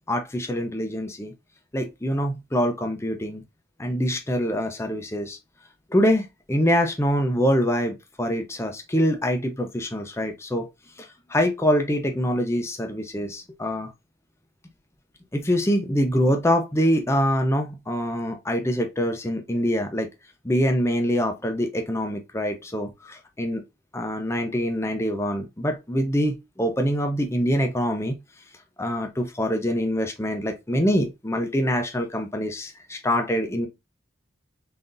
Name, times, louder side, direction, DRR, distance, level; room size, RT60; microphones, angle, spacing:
voice 1, 0.1-1.3 1.7-3.4 3.8-5.4 5.9-10.7 11.0-13.9 15.3-20.1 20.4-23.6 23.9-28.2 28.8-33.7, equal, 15° left, 0.6 m, -24 dB
3.8 x 3.4 x 2.5 m
head